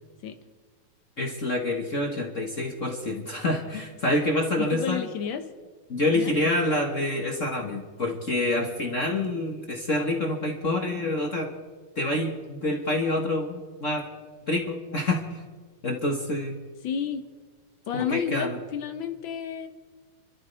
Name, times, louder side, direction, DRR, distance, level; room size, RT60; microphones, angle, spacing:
voice 1, 1.2-5.0 5.9-11.5 11.9-14.0 14.5-15.4 15.8-16.5 17.9-18.6, left 1 dB, 35° left, 1 dB, 1.3 m, -27 dB
voice 2, 4.6-5.5 6.1-6.3 16.8-17.2 17.9-19.7, left 7 dB, 80° left, 7 dB, 1.1 m, -31 dB
27.5 x 13.5 x 3.4 m, 1.4 s
omnidirectional pair, 3.4 m